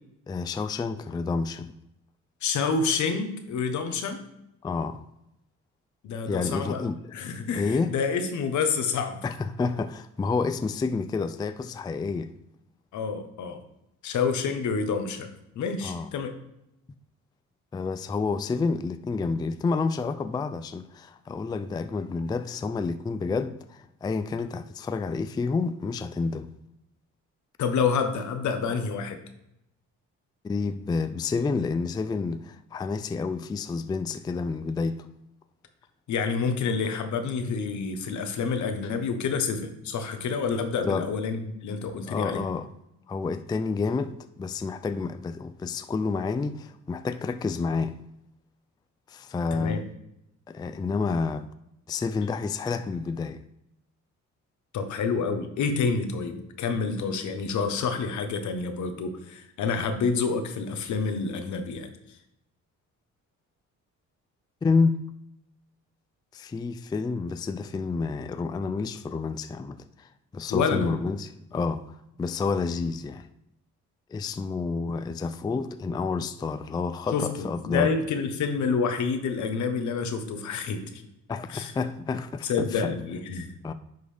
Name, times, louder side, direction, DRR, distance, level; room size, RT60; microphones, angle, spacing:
voice 1, 0.3-1.7 4.6-5.0 6.3-7.0 7.5-7.9 9.2-12.3 15.8-16.1 17.7-26.5 30.4-35.1 40.8-41.0 42.1-42.7 43.1-44.1 44.4-48.0 49.1-49.8 50.5-51.5 51.9-53.4 64.6-65.0 66.3-73.3 74.1-77.9 81.3-82.9 83.6-83.7, left 4 dB, 15° left, 0.3 m, -29 dB
voice 2, 2.4-4.2 6.0-9.2 12.9-13.6 14.0-16.3 27.6-29.2 36.1-42.4 49.5-49.8 54.7-62.2 70.5-70.9 77.1-81.0 81.5-81.7 82.4-83.5, left 5 dB, 70° left, 1.1 m, -28 dB
10.5 x 3.9 x 3.4 m
cardioid pair, 90°, 30 cm